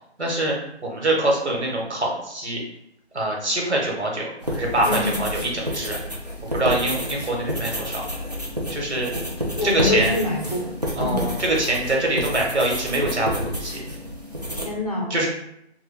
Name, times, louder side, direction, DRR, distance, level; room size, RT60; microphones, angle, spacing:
voice 1, 0.2-0.5 0.8-2.6 3.1-6.0 6.5-8.0 8.7-9.1 9.6-10.1 11.0-13.8 15.1-15.3, right 1 dB, 85° right, -2 dB, 1.0 m, -24 dB
sound 1, 4.4-14.7, equal, 40° right, 0.4 m, -29 dB
voice 2, 4.8-5.2 9.1-9.2 9.6-10.7 11.0-11.4 14.5-15.1, left 2 dB, 35° left, -2 dB, 0.5 m, -26 dB
2.3 x 2.1 x 3.4 m, 0.78 s
figure-of-eight pair, 165°, 33 cm